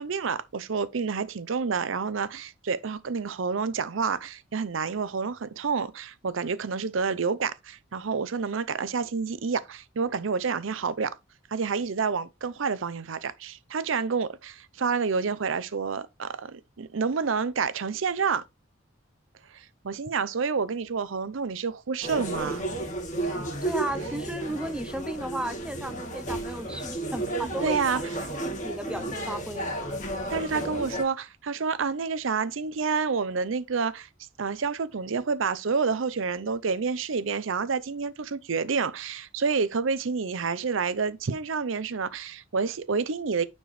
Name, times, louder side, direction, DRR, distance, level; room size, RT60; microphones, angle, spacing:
voice 1, 0.0-11.1 11.5-18.4 19.5-22.7 27.6-28.0 30.3-34.1 34.4-43.4, right 5 dB, 80° right, 0.6 m, -29 dB
sound 1, 22.0-31.0, right 2 dB, 40° left, 1.9 m, -32 dB
voice 2, 23.6-29.7, right 1 dB, 5° right, 0.6 m, -35 dB
9.3 x 4.5 x 3.1 m
head